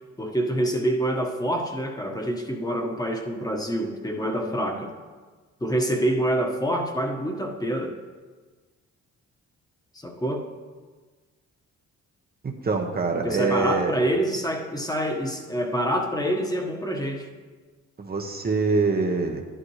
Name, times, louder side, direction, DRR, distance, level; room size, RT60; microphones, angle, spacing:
voice 1, 0.2-4.9 5.6-8.0 9.9-10.5 13.1-17.3, right 1 dB, 10° left, 2 dB, 1.4 m, -26 dB
voice 2, 12.4-13.9 18.0-19.4, right 4 dB, 30° right, 2 dB, 1.1 m, -24 dB
11.5 x 11.0 x 3.2 m, 1.4 s
cardioid pair, 90°, 30 cm